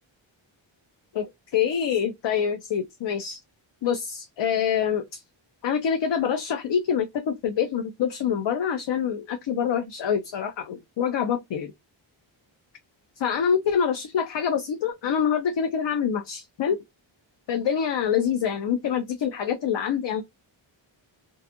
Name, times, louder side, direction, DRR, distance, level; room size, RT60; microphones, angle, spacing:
voice 1, 1.1-3.4 3.8-5.2 5.6-11.7 13.2-16.8 17.5-20.2, left 8 dB, 65° left, 0.6 m, -26 dB
2.6 x 2.3 x 2.5 m
wide cardioid pair, 100°, 48 cm